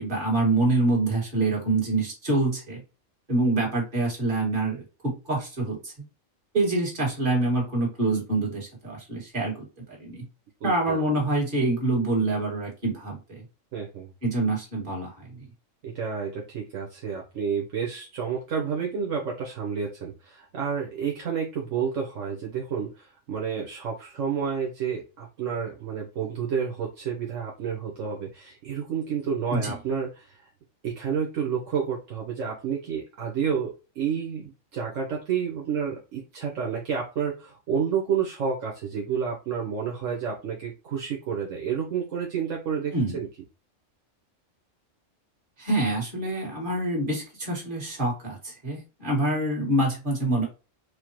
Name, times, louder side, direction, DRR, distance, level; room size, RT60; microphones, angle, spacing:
voice 1, 0.0-2.8 3.3-5.9 6.5-9.7 10.0-10.3 10.6-13.4 14.2-15.4 29.5-29.7 42.9-43.2 45.6-50.4, right 2 dB, 40° right, -3 dB, 1.9 m, -26 dB
voice 2, 10.6-11.0 13.7-14.1 15.8-30.4 30.8-43.3, right 7 dB, 75° right, -1 dB, 1.3 m, -30 dB
4.9 x 2.1 x 3.0 m, 0.31 s
omnidirectional pair, 1.3 m